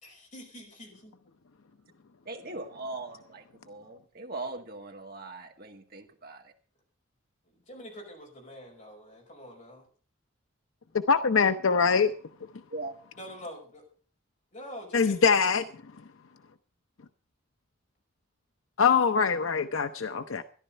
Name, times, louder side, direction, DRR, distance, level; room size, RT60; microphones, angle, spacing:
voice 1, 0.0-1.2 2.5-2.7 7.5-9.9 13.2-13.8 14.5-15.5, equal, 40° left, 5.3 m, -45 dB
voice 2, 2.3-6.5 12.7-12.9, right 2 dB, 50° right, 1.9 m, -40 dB
voice 3, 11.1-12.1 14.9-15.6 18.8-20.4, left 5 dB, 85° left, 0.7 m, -23 dB
13.5 x 11.0 x 5.5 m
head